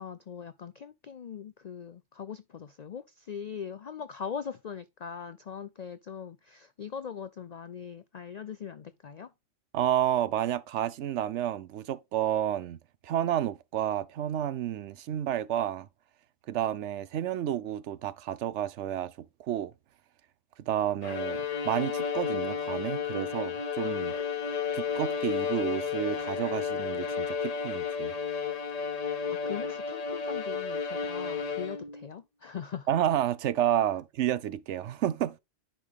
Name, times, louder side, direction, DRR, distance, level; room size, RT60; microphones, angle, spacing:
voice 1, 0.0-9.3 29.3-32.9, left 7 dB, 70° left, 0.4 m, -41 dB
voice 2, 9.7-12.8 13.0-15.9 16.5-19.7 20.6-24.1 24.7-28.2 32.9-35.4, right 11 dB, 70° right, 0.9 m, -30 dB
Bowed string instrument, 21.0-32.0, left 6 dB, 35° left, 0.8 m, -32 dB
10.0 x 5.1 x 3.6 m
omnidirectional pair, 1.3 m